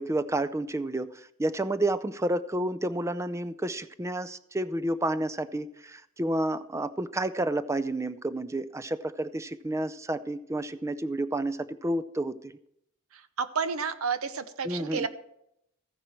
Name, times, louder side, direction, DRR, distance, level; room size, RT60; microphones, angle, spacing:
voice 1, 0.0-12.5 14.6-15.1, right 1 dB, 15° right, 13 dB, 0.4 m, -30 dB
voice 2, 13.4-15.1, right 5 dB, 80° right, 12 dB, 0.8 m, -30 dB
14.5 x 10.0 x 4.6 m, 0.77 s
head